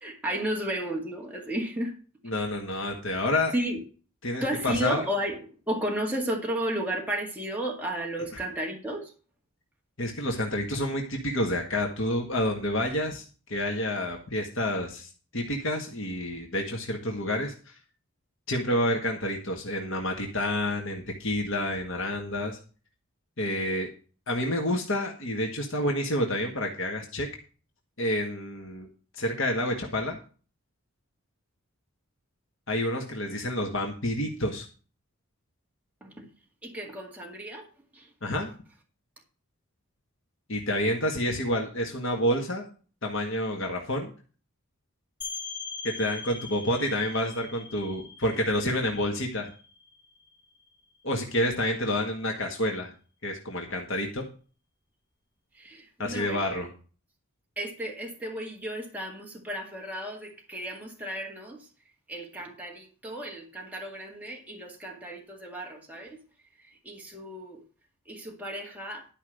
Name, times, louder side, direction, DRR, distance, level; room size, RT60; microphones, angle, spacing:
voice 1, 0.0-1.9 3.5-3.8 4.4-9.1 36.0-36.3 36.6-37.7 37.9-38.1 55.6-56.6 57.6-61.7 62.1-66.2 66.8-67.6 68.1-69.1, right 1 dB, 5° right, 2.1 m, -33 dB
voice 2, 2.2-3.5 4.2-5.0 8.3-8.4 10.0-13.2 13.5-17.7 18.5-22.6 23.4-23.9 24.3-27.3 28.0-28.9 29.2-30.2 32.7-34.7 38.2-38.5 40.5-42.7 43.0-44.1 45.8-49.5 51.0-52.9 53.2-54.2 56.0-56.7, left 1 dB, 60° left, 1.8 m, -29 dB
sound 1, 45.2-50.7, left 5 dB, 20° left, 3.4 m, -41 dB
12.0 x 5.5 x 6.5 m
head